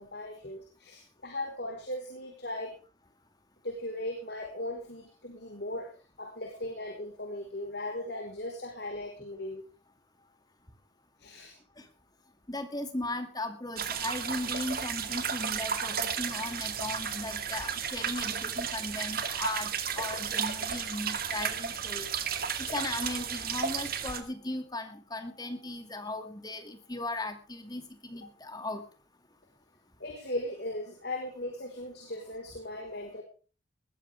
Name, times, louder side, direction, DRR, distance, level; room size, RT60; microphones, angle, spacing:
voice 1, 0.0-2.8 3.6-5.9 6.2-9.6 11.2-11.5 30.0-33.2, left 1 dB, 60° left, 2 dB, 4.7 m, -38 dB
voice 2, 12.5-22.1 22.7-28.8, left 2 dB, 20° left, 7 dB, 2.5 m, -37 dB
sound 1, 13.8-24.2, right 7 dB, 50° right, 2.2 m, -33 dB
20.5 x 14.5 x 3.6 m, 0.37 s
head